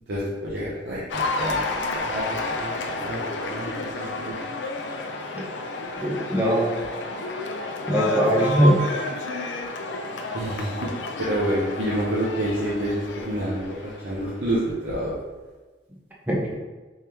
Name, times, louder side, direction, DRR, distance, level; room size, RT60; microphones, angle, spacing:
voice 1, 0.1-1.6 2.0-2.7 3.0-4.3 10.3-10.9 11.2-15.1, right 1 dB, 70° right, -7 dB, 0.7 m, -28 dB
Cheering / Applause, 1.1-14.5, left 2 dB, 80° left, 0.4 m, -31 dB
voice 2, 6.0-6.7 7.9-8.8 16.3-16.5, equal, 10° right, -4 dB, 0.6 m, -21 dB
3.6 x 3.3 x 2.9 m, 1.3 s
head